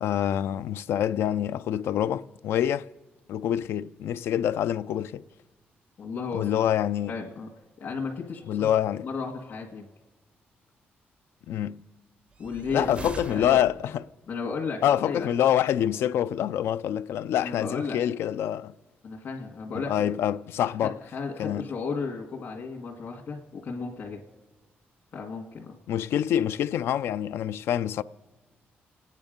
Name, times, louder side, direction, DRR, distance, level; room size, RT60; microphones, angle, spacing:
voice 1, 0.0-2.8 3.3-5.2 6.3-7.1 8.5-9.1 11.5-11.8 12.7-14.0 14.8-18.7 19.8-21.0 21.4-21.6 25.9-28.0, left 10 dB, 85° left, 0.4 m, -26 dB
voice 2, 6.0-6.7 7.1-7.5 7.8-9.9 12.4-13.6 14.3-15.3 17.4-18.0 19.0-20.2 20.8-24.2 25.1-25.8, left 4 dB, 55° left, 1.9 m, -34 dB
sound 1, 12.3-14.1, right 4 dB, 30° right, 0.5 m, -41 dB
28.0 x 9.6 x 5.2 m
cardioid pair, 125°, 4 cm